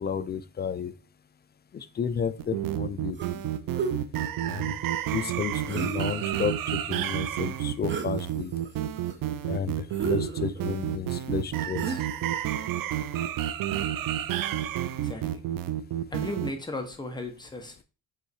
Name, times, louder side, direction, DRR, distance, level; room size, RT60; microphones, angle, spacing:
voice 1, 0.0-0.9 1.7-3.4 4.5-4.7 5.1-8.6 9.5-9.7 10.0-11.9, left 7 dB, 30° left, 0.4 m, -32 dB
Eerie Strolling, 2.4-16.5, right 11 dB, 65° right, 0.6 m, -30 dB
sound 1, 3.2-3.4 3.7-4.0 5.6-6.3 7.9-8.2 8.6-9.2 9.9-10.8 11.8-12.3, right 5 dB, 30° right, 1.0 m, -33 dB
voice 2, 15.0-15.4 16.1-17.8, left 2 dB, 10° left, 1.3 m, -36 dB
5.7 x 3.7 x 4.7 m
cardioid pair, 125°, 36 cm